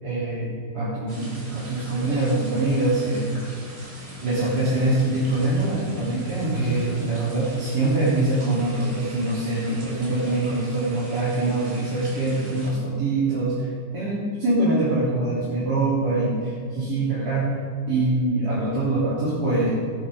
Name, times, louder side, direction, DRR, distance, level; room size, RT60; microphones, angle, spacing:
voice 1, 0.0-3.4 4.2-13.7 13.9-17.6 17.9-19.7, right 2 dB, 55° right, -10 dB, 4.2 m, -24 dB
sound 1, 1.1-12.7, right 1 dB, 85° right, 4.0 m, -42 dB
sound 2, 4.1-9.2, right 2 dB, 25° right, 2.0 m, -33 dB
17.5 x 10.0 x 3.9 m, 2.4 s
omnidirectional pair, 1.9 m